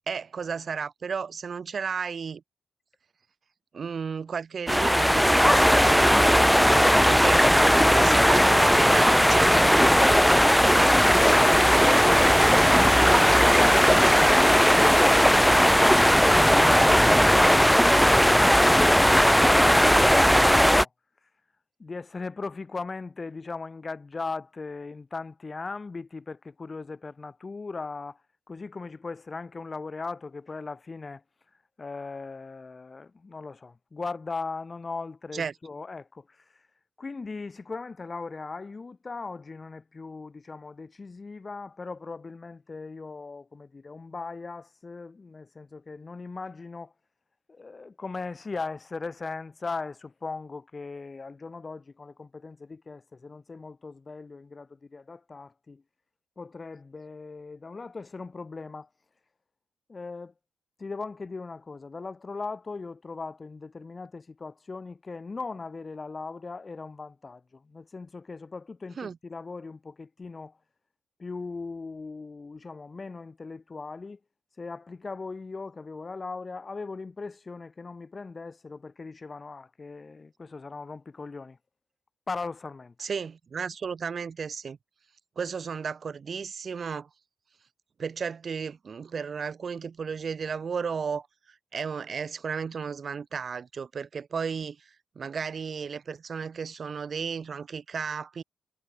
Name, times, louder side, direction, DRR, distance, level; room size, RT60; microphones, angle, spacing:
voice 1, 0.1-2.4 3.7-7.5 7.9-11.0 35.3-35.5 69.0-69.2 83.0-84.8 85.4-87.1 88.0-91.3 91.7-94.9 95.1-98.4, right 6 dB, 55° right, 1.5 m, -33 dB
sound 1, 4.7-20.8, equal, ahead, 0.4 m, -18 dB
voice 2, 21.8-28.2 28.5-31.2 31.8-36.7 37.0-46.9 47.5-55.8 56.4-58.9 59.9-60.3 60.8-70.6 71.2-74.2 74.6-81.6 82.3-82.9, left 4 dB, 35° left, 2.3 m, -39 dB
cardioid pair, 70°, 0 cm